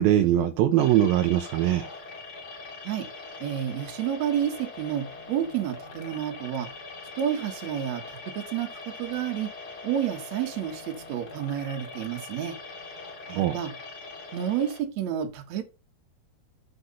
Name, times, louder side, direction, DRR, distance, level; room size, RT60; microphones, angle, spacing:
voice 1, 0.0-1.9 13.3-13.6, right 12 dB, 80° right, 2.3 m, -22 dB
sound 1, 0.8-14.8, left 3 dB, 55° left, 1.0 m, -42 dB
voice 2, 3.4-6.7 7.2-9.5 9.8-12.6 13.3-13.7 14.3-15.6, right 10 dB, 60° right, 2.1 m, -30 dB
7.9 x 5.0 x 5.4 m
omnidirectional pair, 4.5 m